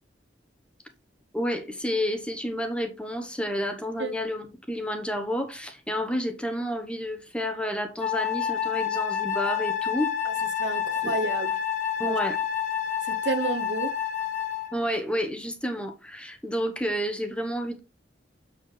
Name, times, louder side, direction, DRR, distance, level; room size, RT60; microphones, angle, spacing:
voice 1, 1.3-10.1 11.0-11.1 12.0-12.4 14.7-17.8, equal, 5° left, 1.0 m, -30 dB
Wind instrument woodwind instrument, 8.0-14.8, left 9 dB, 45° left, 1.2 m, -28 dB
voice 2, 10.6-11.5 12.1-12.2 13.1-13.9, right 3 dB, 80° right, 0.9 m, -30 dB
7.3 x 6.8 x 3.3 m
head